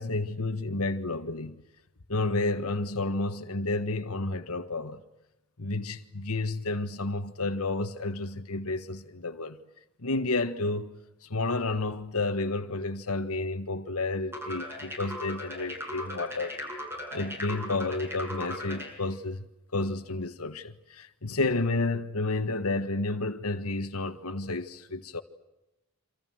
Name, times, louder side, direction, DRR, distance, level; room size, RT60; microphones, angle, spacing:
voice 1, 0.0-1.6 2.1-5.0 5.6-9.6 10.0-16.6 17.1-19.5 19.7-25.2, left 2 dB, 80° left, 1.6 m, -31 dB
sound 1, 14.3-18.9, left 1 dB, 10° right, 7.5 m, -38 dB
28.0 x 26.5 x 7.8 m
head